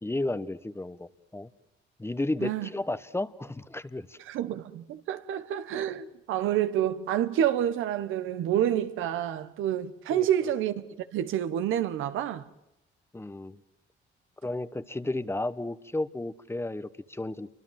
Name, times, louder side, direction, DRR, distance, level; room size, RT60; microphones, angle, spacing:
voice 1, 0.0-1.5 2.0-4.2 10.1-10.3 13.1-13.6 14.4-17.5, left 2 dB, 10° left, 1.1 m, -33 dB
voice 2, 4.3-10.8 11.1-12.4, right 10 dB, 90° right, 1.3 m, -28 dB
28.0 x 24.5 x 7.6 m
cardioid pair, 90°, 20 cm